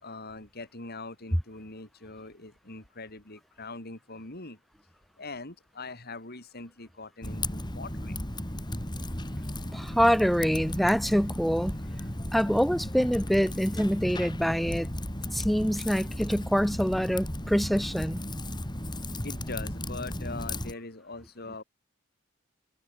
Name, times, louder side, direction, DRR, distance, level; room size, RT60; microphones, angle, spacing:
voice 1, 0.0-4.6 5.2-8.2 19.2-21.6, left 3 dB, 50° left, 4.7 m, -42 dB
Typing, 7.2-20.7, left 1 dB, 20° left, 4.5 m, -35 dB
voice 2, 9.7-11.8 12.3-14.9 15.3-18.2, equal, ahead, 0.7 m, -25 dB
head